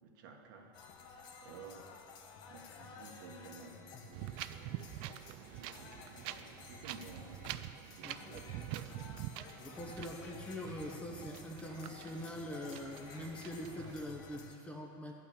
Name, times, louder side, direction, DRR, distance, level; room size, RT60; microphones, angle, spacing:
voice 1, 0.0-0.7 1.4-2.0 2.5-4.7 5.2-7.6 8.0-9.0, right 5 dB, 70° right, 2 dB, 1.5 m, -54 dB
sound 1, 0.7-14.6, left 5 dB, 40° left, 1.0 m, -54 dB
Wind, 4.1-14.0, right 13 dB, 50° right, 0.4 m, -46 dB
voice 2, 8.0-8.6 9.6-15.1, left 1 dB, 10° left, 1 dB, 1.0 m, -44 dB
11.5 x 6.0 x 8.6 m, 2.6 s
supercardioid pair, 150°, 11 cm